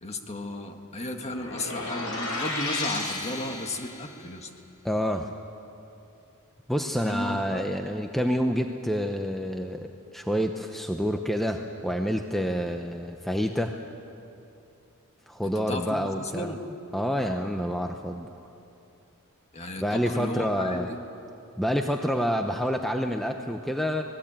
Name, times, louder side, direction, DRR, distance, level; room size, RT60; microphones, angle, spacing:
voice 1, 0.0-4.5 7.0-7.6 15.4-16.6 19.5-21.0, left 1 dB, 30° left, 4 dB, 1.7 m, -34 dB
sound 1, 1.3-4.1, left 2 dB, 65° left, 5.9 m, -33 dB
voice 2, 4.8-5.3 6.7-13.8 15.3-16.5 16.9-18.3 19.8-20.9 21.6-24.0, equal, ahead, 4 dB, 0.7 m, -28 dB
25.5 x 19.0 x 8.8 m, 2.8 s
head